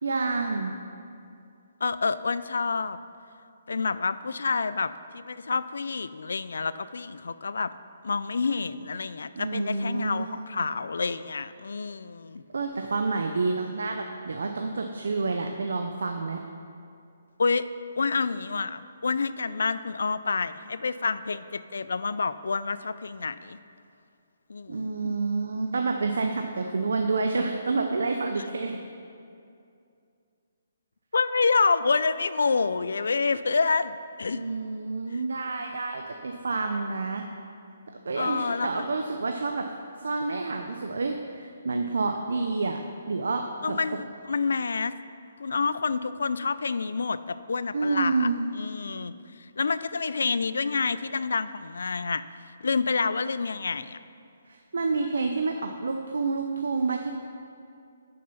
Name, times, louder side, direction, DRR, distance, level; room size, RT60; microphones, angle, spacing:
voice 1, 0.0-0.7 9.3-10.6 12.5-16.4 24.7-28.8 34.3-37.2 38.1-39.7 40.0-43.8 47.7-48.4 54.5-57.1, right 3 dB, 85° right, 4 dB, 0.5 m, -29 dB
voice 2, 1.8-3.0 3.7-7.7 8.0-12.4 17.4-17.6 18.0-23.6 24.5-25.1 31.1-34.4 38.1-38.8 43.6-44.9 45.4-49.1 49.6-52.2 52.6-54.0, left 4 dB, 80° left, 14 dB, 0.3 m, -28 dB
6.8 x 6.5 x 5.6 m, 2.5 s
hypercardioid pair, 160°, 0 cm